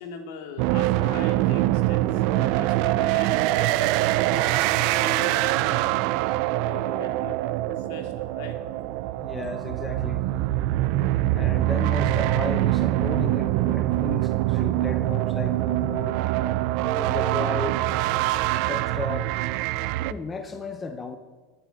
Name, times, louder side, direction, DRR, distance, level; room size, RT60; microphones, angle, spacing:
voice 1, 0.0-3.9 4.3-5.8 6.6-7.4 7.7-8.6, left 5 dB, 55° left, 5 dB, 2.3 m, -40 dB
sound 1, 0.6-20.1, right 15 dB, 45° right, 0.4 m, -24 dB
voice 2, 9.2-10.2 11.3-16.2 17.0-17.8 18.6-19.3 20.1-21.2, left 3 dB, 15° left, 8 dB, 0.7 m, -34 dB
12.0 x 9.0 x 9.0 m, 1.4 s
supercardioid pair, 160°, 0 cm